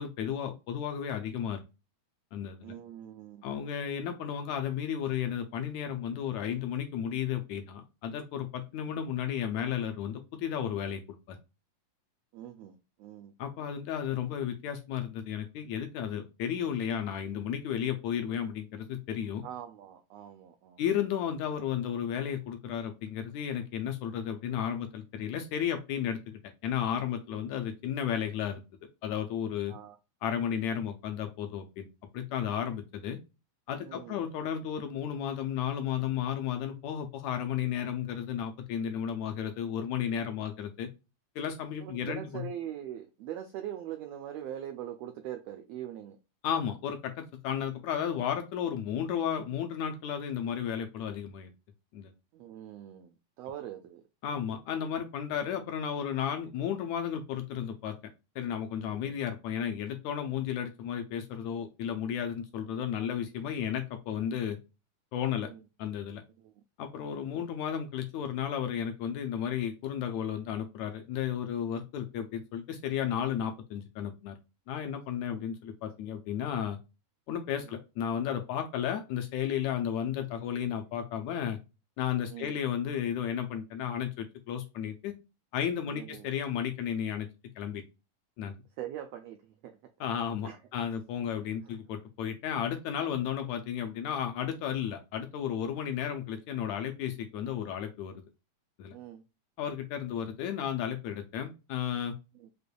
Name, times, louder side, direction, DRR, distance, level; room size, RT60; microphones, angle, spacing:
voice 1, 0.0-1.6 2.3-2.7 3.4-11.4 13.4-19.4 20.8-28.6 29.0-29.7 30.2-31.9 32.1-33.2 33.7-40.9 41.4-42.5 46.4-51.5 51.9-52.1 54.2-58.0 58.4-64.6 65.1-65.5 65.8-66.2 66.8-74.3 74.7-76.8 77.3-81.6 82.0-85.1 85.5-87.3 87.6-87.8 88.4-88.6 90.0-98.2 98.8-99.0 99.6-102.2, left 9 dB, 75° left, 1.8 m, -33 dB
voice 2, 2.6-3.5 12.3-13.3 19.4-20.8 27.5-27.6 29.7-30.0 33.8-34.2 41.8-46.2 52.3-54.0 58.9-59.1 62.6-62.8 65.3-65.6 66.4-66.5 67.1-67.3 75.3-75.5 82.3-82.6 85.9-86.3 88.8-89.4 89.6-89.7 90.4-90.6 98.9-99.2 102.4-102.5, right 11 dB, 85° right, 1.4 m, -42 dB
6.5 x 2.6 x 2.2 m
omnidirectional pair, 3.5 m